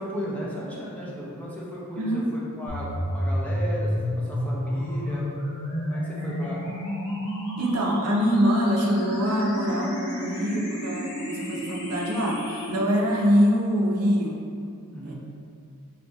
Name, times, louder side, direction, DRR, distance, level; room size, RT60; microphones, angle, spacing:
voice 1, 0.0-2.2 2.6-5.3 5.9-6.6 14.9-15.1, equal, 5° left, -6 dB, 0.4 m, -35 dB
sound 1, 2.7-12.7, equal, 75° left, 0.6 m, -30 dB
voice 2, 7.6-14.4 15.0-15.1, equal, 80° right, -2 dB, 0.5 m, -24 dB
4.0 x 2.7 x 2.2 m, 2.4 s
head